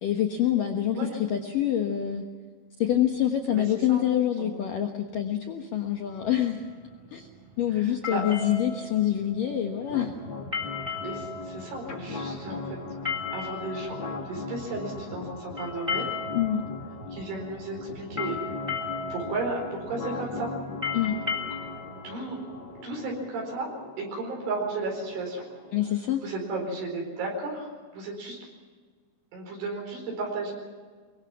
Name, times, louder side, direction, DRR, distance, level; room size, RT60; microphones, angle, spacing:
voice 1, 0.0-2.2 2.8-6.7 7.1-7.3 7.6-10.1 16.3-16.6 20.9-21.2 25.7-26.2, left 11 dB, 80° left, 3 dB, 1.9 m, -26 dB
sound 1, 6.1-23.3, left 5 dB, 10° right, 2.1 m, -37 dB
voice 2, 7.8-8.5 11.0-12.8 13.3-16.1 17.1-18.4 19.1-20.5 22.0-22.4 22.7-23.7 24.0-25.4 26.2-28.4 29.3-30.5, right 3 dB, 65° right, 0 dB, 6.8 m, -34 dB
sound 2, 9.9-25.9, left 3 dB, 40° left, 1.8 m, -39 dB
24.0 x 23.0 x 6.0 m, 1.5 s
omnidirectional pair, 6.0 m